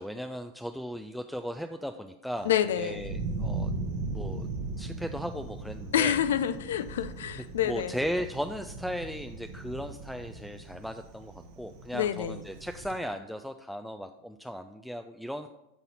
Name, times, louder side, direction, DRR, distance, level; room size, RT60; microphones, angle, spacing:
voice 1, 0.0-3.7 4.1-4.5 4.8-6.2 7.6-15.5, equal, ahead, 7 dB, 0.4 m, -37 dB
voice 2, 2.4-3.0 5.9-7.9 11.9-12.4, left 10 dB, 70° left, 13 dB, 0.5 m, -27 dB
Thunder, 2.4-13.0, right 3 dB, 55° right, 1.0 m, -38 dB
12.0 x 4.1 x 4.1 m, 0.92 s
hypercardioid pair, 90°, 0 cm